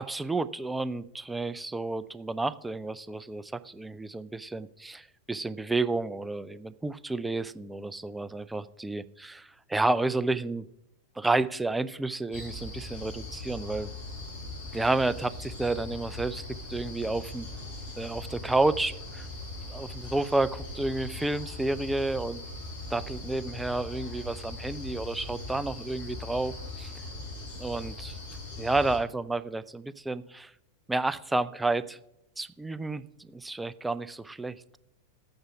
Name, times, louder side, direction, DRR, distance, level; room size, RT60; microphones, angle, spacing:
voice 1, 0.0-10.7 11.2-13.9 14.7-16.4 16.7-17.5 18.0-19.3 19.7-22.4 22.9-26.5 27.6-28.2 28.6-30.5 30.9-32.0 32.4-34.8, right 2 dB, 5° right, 15 dB, 0.4 m, -30 dB
sound 1, 12.3-29.0, left 2 dB, 55° left, 4.9 m, -40 dB
12.5 x 8.9 x 5.0 m, 0.81 s
figure-of-eight pair, 90°, 0 cm